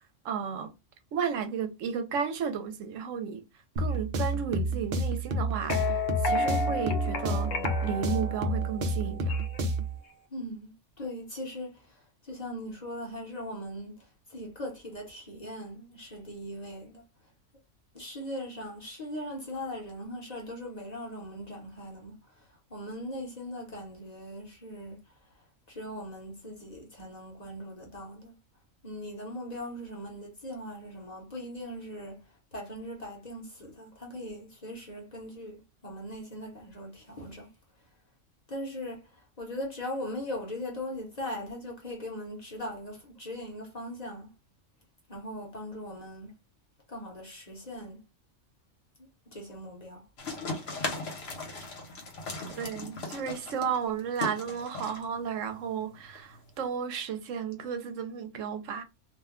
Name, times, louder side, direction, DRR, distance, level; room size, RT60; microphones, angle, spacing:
voice 1, 0.2-0.7 1.1-3.4 3.8-7.5 7.8-9.4 52.5-58.8, right 7 dB, 80° right, 1.0 m, -33 dB
sound 1, 3.8-10.0, right 1 dB, 60° right, 0.7 m, -30 dB
sound 2, 5.6-9.7, left 3 dB, 80° left, 0.9 m, -32 dB
voice 2, 10.3-17.0 17.9-25.2 25.7-28.4 28.8-37.5 38.5-44.3 45.1-46.4 46.9-48.1 49.0-50.1, left 1 dB, 35° left, 0.9 m, -40 dB
sound 3, 50.2-56.6, left 2 dB, 55° left, 1.1 m, -38 dB
2.5 x 2.2 x 3.5 m
omnidirectional pair, 1.3 m